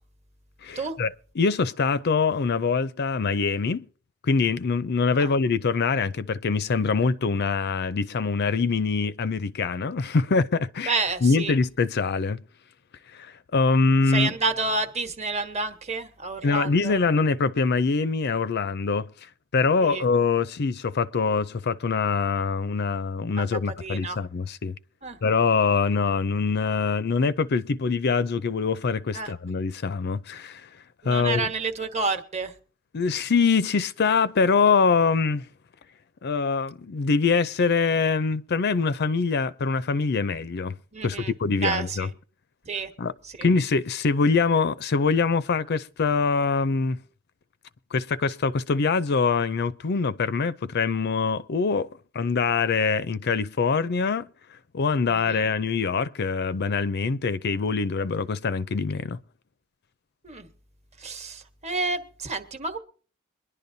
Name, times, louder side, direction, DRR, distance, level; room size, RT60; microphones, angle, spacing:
voice 1, 0.6-3.8 4.2-10.9 11.2-12.4 13.1-14.3 16.4-19.1 19.5-24.8 25.2-30.7 31.0-31.5 32.9-35.5 36.2-40.8 41.0-42.1 43.0-43.1 43.4-47.0 47.9-51.9 52.1-54.3 54.7-59.2, left 4 dB, 50° left, 0.5 m, -24 dB
voice 2, 10.9-11.5 14.1-17.0 19.8-20.0 23.4-23.5 23.8-24.2 25.0-25.2 29.1-29.3 31.0-32.5 40.9-41.3 41.6-42.1 42.6-42.9 43.2-43.5 55.1-55.5 60.2-60.5 61.0-62.8, right 3 dB, 30° right, 1.2 m, -29 dB
23.0 x 11.0 x 2.7 m
head